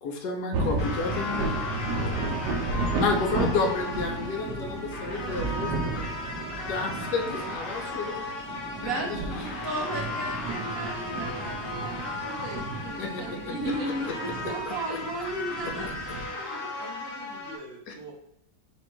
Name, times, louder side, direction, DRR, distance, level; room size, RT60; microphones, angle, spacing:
voice 1, 0.0-1.6 3.0-6.0 6.7-8.3 8.8-9.4 13.0-13.5 14.7-15.0 15.6-15.7 17.9-18.0, left 4 dB, 75° left, 3 dB, 1.3 m, -31 dB
sound 1, 0.5-16.2, right 3 dB, 85° right, 1.3 m, -34 dB
sound 2, 0.8-17.6, left 2 dB, 45° left, 1.1 m, -36 dB
voice 2, 1.7-2.2 16.8-18.1, right 2 dB, 45° right, -3 dB, 1.0 m, -44 dB
voice 3, 8.8-15.9 16.3-16.6, right 1 dB, 60° right, 0 dB, 1.3 m, -35 dB
4.3 x 2.6 x 4.4 m, 0.76 s
omnidirectional pair, 1.8 m